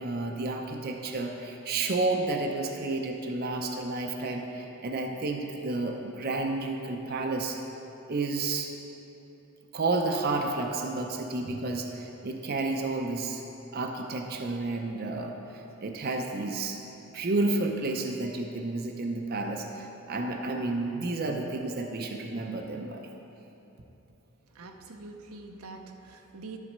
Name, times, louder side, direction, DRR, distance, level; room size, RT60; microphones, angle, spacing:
voice 1, 0.0-7.6 8.1-8.7 9.7-13.4 13.7-16.8 17.1-23.1, right 2 dB, 45° right, 2 dB, 0.6 m, -31 dB
voice 2, 24.5-26.6, right 3 dB, 85° right, 4 dB, 0.7 m, -45 dB
12.0 x 4.1 x 6.5 m, 3.0 s
head